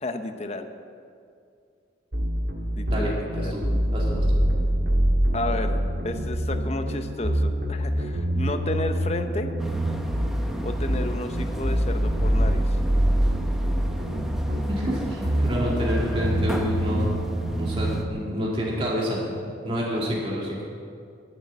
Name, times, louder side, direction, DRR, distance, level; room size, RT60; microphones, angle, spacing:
voice 1, 0.0-0.7 2.7-3.6 5.3-9.5 10.6-12.8, left 2 dB, 35° left, 8 dB, 0.8 m, -32 dB
sound 1, 2.1-18.1, equal, 65° right, 1.7 m, -25 dB
voice 2, 2.9-3.6 3.9-4.4 14.7-17.1 17.6-19.2 19.6-20.7, equal, 30° right, -4 dB, 2.1 m, -28 dB
sound 2, 9.6-18.0, equal, ahead, 0.9 m, -34 dB
13.0 x 7.7 x 8.2 m, 2.4 s
head